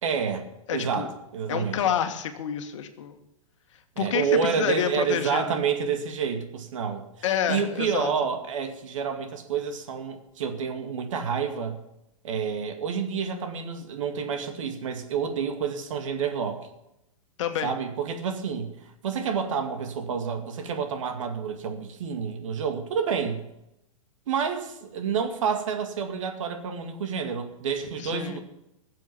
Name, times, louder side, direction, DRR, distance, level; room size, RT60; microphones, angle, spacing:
voice 1, 0.0-1.8 4.0-7.0 7.5-11.8 12.2-16.7 17.6-23.4 24.3-28.4, right 6 dB, 65° right, 6 dB, 2.3 m, -29 dB
voice 2, 0.7-1.1 1.5-3.2 4.0-4.3 4.6-5.6 7.2-8.1 17.4-17.7 28.0-28.4, left 9 dB, 60° left, 8 dB, 1.7 m, -28 dB
15.5 x 7.6 x 7.4 m, 0.85 s
hypercardioid pair, 120°, 18 cm